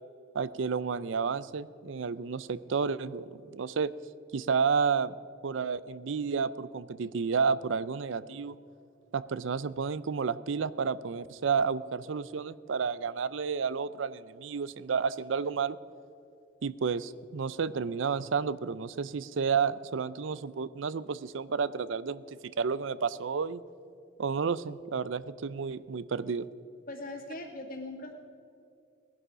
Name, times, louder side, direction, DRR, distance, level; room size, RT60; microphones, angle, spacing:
voice 1, 0.3-3.9 4.3-5.1 5.4-8.6 9.1-15.8 16.6-23.6 24.2-26.5, right 5 dB, 70° right, 17 dB, 0.5 m, -31 dB
voice 2, 26.9-28.1, left 2 dB, 45° left, 2 dB, 2.3 m, -40 dB
19.0 x 11.0 x 5.1 m, 2.6 s
head